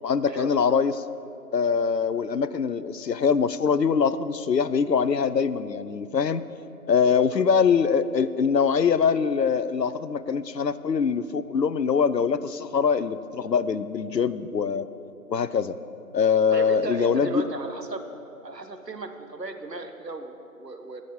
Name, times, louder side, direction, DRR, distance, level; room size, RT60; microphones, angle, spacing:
voice 1, 0.0-0.9 1.5-6.4 6.9-14.9 15.3-15.7 16.1-17.4, left 6 dB, 90° left, 14 dB, 0.7 m, -23 dB
voice 2, 7.0-7.4 16.5-18.0 18.4-21.0, right 3 dB, 85° right, 6 dB, 1.3 m, -35 dB
14.5 x 6.5 x 7.0 m, 2.8 s
figure-of-eight pair, 175°, 48 cm